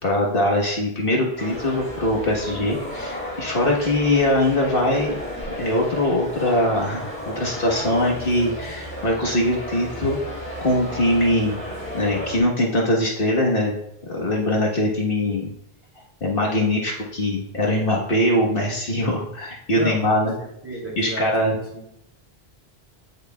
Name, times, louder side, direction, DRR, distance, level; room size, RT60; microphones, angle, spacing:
voice 1, 0.0-5.2 5.6-7.0 7.2-10.2 10.6-11.5 11.9-13.8 14.1-15.5 16.2-20.3 21.0-21.5, left 1 dB, 60° left, -2 dB, 1.6 m, -22 dB
sound 1, 1.4-12.4, left 1 dB, 10° left, 3.1 m, -33 dB
voice 2, 19.7-20.3 20.6-21.5 21.7-21.9, equal, 10° right, -3 dB, 2.8 m, -32 dB
16.0 x 6.6 x 2.3 m, 0.77 s
omnidirectional pair, 1.1 m